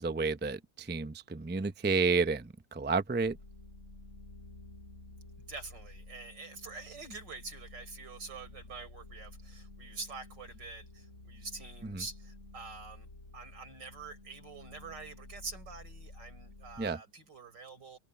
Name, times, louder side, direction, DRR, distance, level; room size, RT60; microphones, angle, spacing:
voice 1, 0.0-3.4 11.8-12.0 16.8-17.0, right 4 dB, 15° right, 0.4 m, -31 dB
sound 1, 3.2-16.9, left 2 dB, 45° left, 5.3 m, -52 dB
voice 2, 5.4-18.0, right 4 dB, 90° right, 4.9 m, -46 dB
omnidirectional pair, 1.9 m